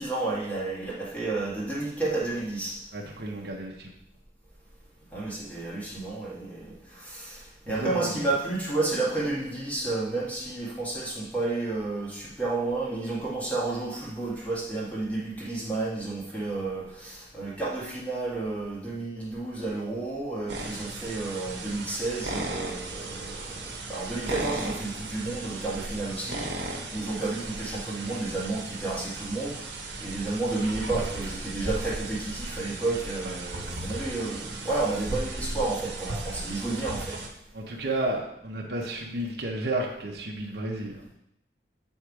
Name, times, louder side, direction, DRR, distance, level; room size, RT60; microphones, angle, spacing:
voice 1, 0.0-2.7 5.1-26.4 26.9-29.6 30.0-37.1, right 2 dB, 10° left, -6 dB, 1.8 m, -31 dB
voice 2, 2.9-3.9 7.7-8.2 33.2-33.4 37.5-41.0, right 1 dB, 60° right, -2 dB, 1.0 m, -32 dB
sound 1, 20.5-37.3, right 2 dB, 80° right, 1.1 m, -36 dB
8.5 x 3.6 x 4.8 m, 0.80 s
head